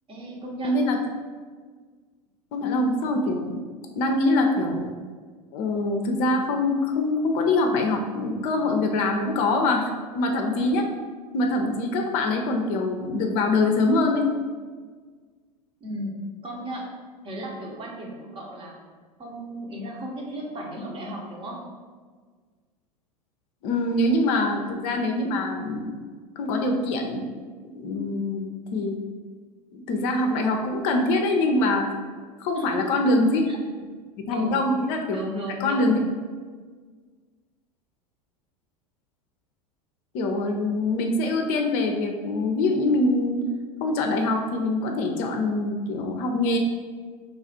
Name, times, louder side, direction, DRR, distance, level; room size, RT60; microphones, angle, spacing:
voice 1, 0.1-0.8 15.8-16.9 17.2-18.7 19.2-21.6 32.5-33.1 33.5-33.6 34.3-34.6 35.1-36.0, equal, 25° right, -1 dB, 0.9 m, -35 dB
voice 2, 0.6-1.0 2.5-3.5 4.0-4.9 5.5-10.9 11.3-14.2 23.6-26.0 26.4-27.2 27.6-29.0 29.7-31.9 32.4-33.4 34.3-35.2 35.6-36.0 40.1-43.4 43.8-46.6, left 2 dB, 50° left, 3 dB, 0.5 m, -24 dB
3.2 x 2.4 x 4.2 m, 1.5 s
hypercardioid pair, 85°, 20 cm